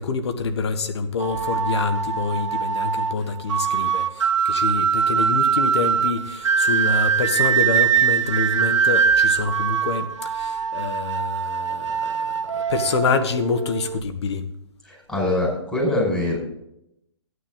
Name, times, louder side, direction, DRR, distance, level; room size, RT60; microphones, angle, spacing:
voice 1, 0.0-14.4, left 5 dB, 65° left, 1.4 m, -26 dB
sound 1, 1.2-14.0, right 7 dB, 80° right, 0.5 m, -22 dB
voice 2, 14.9-16.4, left 1 dB, 5° left, 5.2 m, -23 dB
13.5 x 9.7 x 3.8 m
hypercardioid pair, 135°, 15 cm